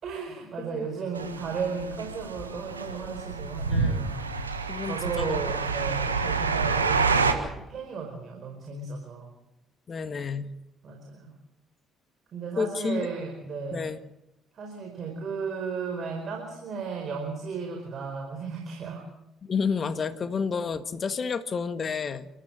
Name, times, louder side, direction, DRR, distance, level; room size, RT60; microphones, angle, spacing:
voice 1, 0.0-4.4 4.8-9.3 10.8-11.3 12.3-13.9 14.5-19.0, right 5 dB, 50° right, 2 dB, 4.9 m, -35 dB
sound 1, 1.2-7.3, right 4 dB, 90° right, 1.5 m, -28 dB
voice 2, 3.7-4.0 4.7-5.4 5.9-6.1 9.9-10.5 12.6-13.1 13.7-14.0 19.4-22.3, left 5 dB, 40° left, 12 dB, 1.7 m, -30 dB
29.0 x 14.0 x 7.8 m, 0.88 s
figure-of-eight pair, 50°, 0 cm